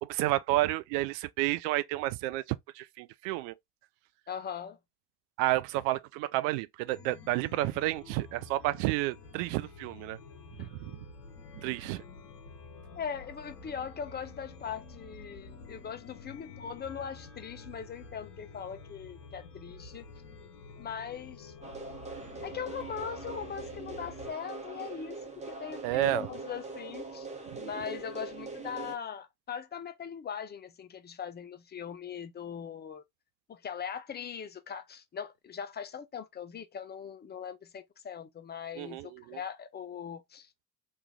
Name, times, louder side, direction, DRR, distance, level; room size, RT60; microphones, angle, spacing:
voice 1, 0.0-2.4 2.8-3.5 5.4-10.2 10.6-11.0 11.5-12.0 25.8-26.3 27.5-27.6 38.8-39.4, right 16 dB, 60° right, 0.5 m, -31 dB
voice 2, 4.3-4.8 10.6-10.7 13.0-20.1 20.8-21.5 22.4-27.3 27.6-33.0 33.5-40.5, left 7 dB, 25° left, 0.5 m, -40 dB
Chime, 6.9-24.3, left 4 dB, 80° left, 0.7 m, -49 dB
sound 1, 21.6-29.0, right 3 dB, 15° right, 1.0 m, -42 dB
3.1 x 2.4 x 3.3 m
figure-of-eight pair, 55°, 46 cm